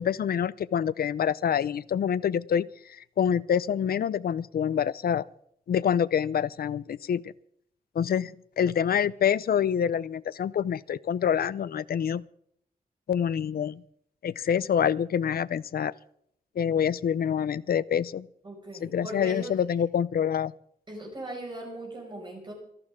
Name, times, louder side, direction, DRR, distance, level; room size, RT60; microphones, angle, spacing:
voice 1, 0.0-5.2 5.7-7.2 8.0-8.3 8.6-12.2 13.1-13.8 14.2-15.9 16.6-18.3 18.8-20.5, left 8 dB, 85° left, 20 dB, 0.5 m, -26 dB
voice 2, 18.4-19.5 20.9-22.5, right 1 dB, 30° right, -1 dB, 5.8 m, -38 dB
26.5 x 11.5 x 3.7 m, 0.70 s
wide cardioid pair, 160°, 15 cm